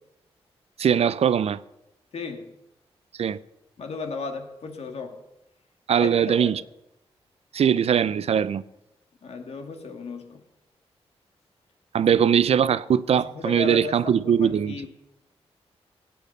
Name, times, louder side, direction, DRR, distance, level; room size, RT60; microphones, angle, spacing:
voice 1, 0.8-1.6 3.2-3.4 5.9-6.6 7.5-8.6 11.9-14.8, right 8 dB, 70° right, 0.6 m, -21 dB
voice 2, 2.1-2.5 3.8-5.2 6.0-6.5 9.2-10.4 12.0-12.1 13.2-14.9, left 4 dB, 70° left, 2.1 m, -35 dB
18.0 x 8.7 x 6.7 m
cardioid pair, 60°, 11 cm